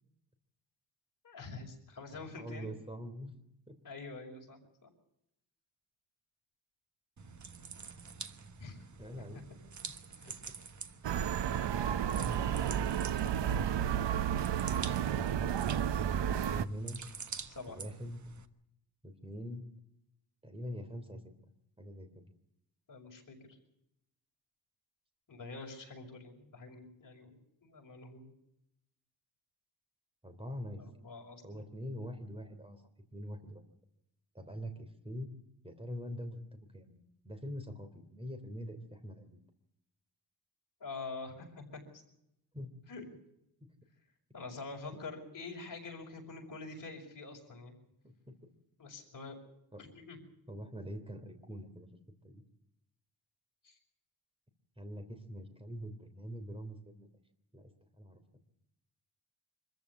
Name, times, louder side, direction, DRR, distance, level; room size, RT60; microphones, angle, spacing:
voice 1, 1.2-2.7 3.8-4.9 8.6-8.8 9.3-9.4 10.2-10.3 17.5-17.8 22.9-23.6 25.3-28.3 30.7-31.7 40.8-41.8 42.9-43.1 44.3-47.7 48.8-49.4 49.8-50.2 53.6-53.8, left 3 dB, 50° left, 1 dB, 5.9 m, -46 dB
voice 2, 2.1-3.3 3.7-3.8 9.0-9.4 10.2-10.3 12.2-13.9 14.8-15.6 16.2-17.0 17.7-18.2 19.0-19.6 20.4-21.2 21.8-22.1 30.2-30.8 31.4-32.8 33.1-33.6 34.3-35.3 35.6-37.0 37.2-39.4 42.5-42.7 44.9-45.0 48.0-48.5 49.7-49.9 50.5-51.9 52.2-52.4 54.8-57.1 57.5-57.7 58.0-58.2, equal, 15° right, 7 dB, 3.3 m, -44 dB
sound 1, 7.2-18.5, right 5 dB, 45° right, 1.3 m, -48 dB
sound 2, 11.0-16.7, right 9 dB, 85° right, 0.8 m, -32 dB
25.0 x 14.5 x 8.3 m, 0.81 s
wide cardioid pair, 165°, 42 cm